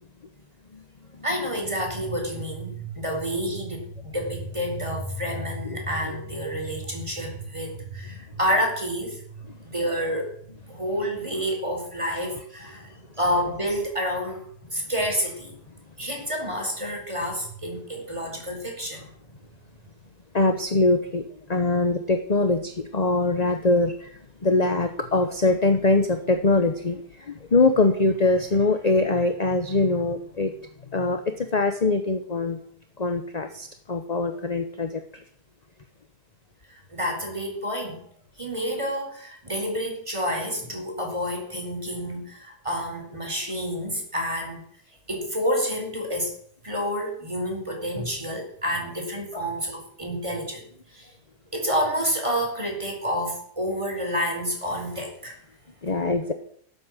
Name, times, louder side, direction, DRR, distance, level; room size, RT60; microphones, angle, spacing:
voice 1, 1.2-10.3 10.7-12.9 13.2-15.6 16.0-19.1 36.7-38.1 38.4-44.6 45.1-46.3 46.6-51.1 51.5-55.4, equal, 15° right, 4.5 m, -29 dB
voice 2, 20.3-21.2 21.5-24.1 24.4-30.5 30.9-32.6 33.0-35.2 49.3-49.4 55.8-56.3, left 3 dB, 30° left, 1.0 m, -23 dB
17.0 x 8.6 x 7.6 m
omnidirectional pair, 1.8 m